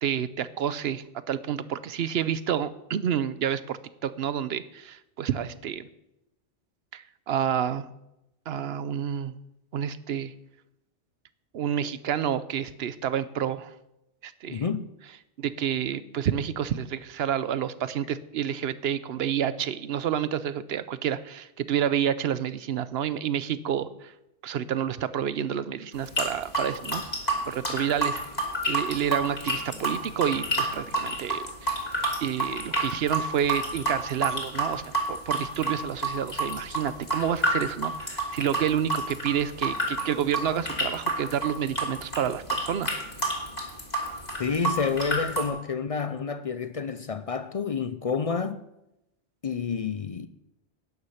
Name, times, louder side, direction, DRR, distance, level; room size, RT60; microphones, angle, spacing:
voice 1, 0.0-5.9 6.9-7.9 8.5-9.3 9.7-10.3 11.5-13.7 14.2-14.6 15.4-24.1 24.4-27.0 27.5-28.2 28.7-31.8 32.2-43.0, right 9 dB, 65° right, 0.9 m, -29 dB
voice 2, 14.5-14.9 44.4-48.6 49.4-50.3, left 5 dB, 50° left, 0.4 m, -29 dB
sound 1, 25.9-45.5, right 2 dB, 35° left, 3.1 m, -29 dB
12.0 x 9.8 x 5.7 m
omnidirectional pair, 1.2 m